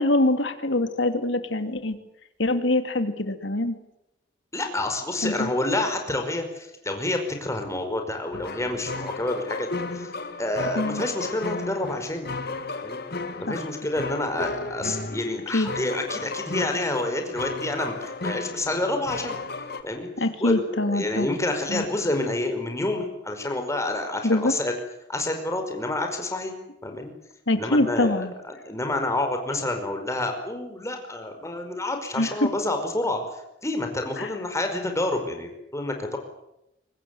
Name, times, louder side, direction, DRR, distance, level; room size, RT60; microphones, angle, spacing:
voice 1, 0.0-2.0 2.4-3.8 5.2-5.5 10.8-11.0 13.5-13.6 15.5-15.7 20.2-21.3 21.7-21.8 24.2-24.5 27.5-28.3 32.2-32.5 34.2-34.3, left 2 dB, 75° left, 8 dB, 2.7 m, -24 dB
voice 2, 4.5-10.1 10.4-12.3 12.8-13.0 13.4-19.4 19.8-20.1 20.4-24.7 25.1-26.5 26.8-27.1 27.6-33.2 33.6-36.2, left 2 dB, 15° left, 4 dB, 5.2 m, -28 dB
sound 1, 8.3-19.8, left 3 dB, 55° left, 2.3 m, -34 dB
24.0 x 20.0 x 9.3 m, 0.84 s
head